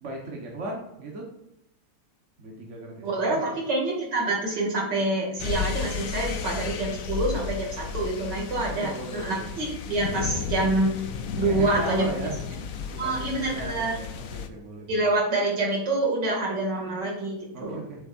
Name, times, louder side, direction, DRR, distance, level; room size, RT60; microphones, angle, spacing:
voice 1, 0.0-1.3 2.4-3.4 8.7-9.5 11.4-12.4 12.8-15.0 17.5-18.1, right 2 dB, 40° right, -1 dB, 1.6 m, -36 dB
voice 2, 3.0-11.0 11.4-12.1 13.0-14.0 14.9-17.8, right 2 dB, 55° right, -2 dB, 3.2 m, -26 dB
sound 1, 5.4-14.5, left 6 dB, 60° left, 0.9 m, -33 dB
8.7 x 7.8 x 2.7 m, 0.84 s
omnidirectional pair, 2.2 m